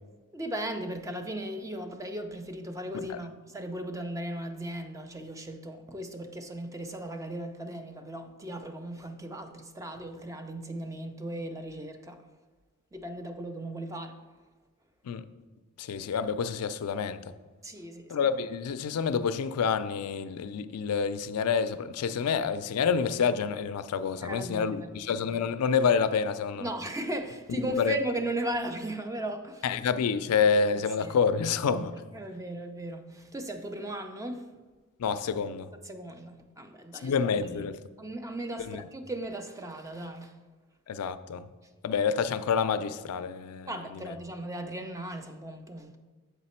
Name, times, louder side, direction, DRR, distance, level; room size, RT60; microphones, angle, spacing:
voice 1, 0.3-12.2 12.9-14.2 17.6-18.2 24.2-24.9 26.6-29.8 30.7-31.2 31.7-34.5 35.8-37.7 38.0-40.3 43.6-45.9, right 1 dB, 15° right, 0.5 m, -37 dB
voice 2, 15.8-17.2 18.1-26.7 27.5-28.0 29.6-31.9 35.0-35.7 37.0-37.8 38.7-38.8 40.9-41.4 41.8-44.0, left 6 dB, 85° left, 0.4 m, -28 dB
7.1 x 4.1 x 4.3 m
head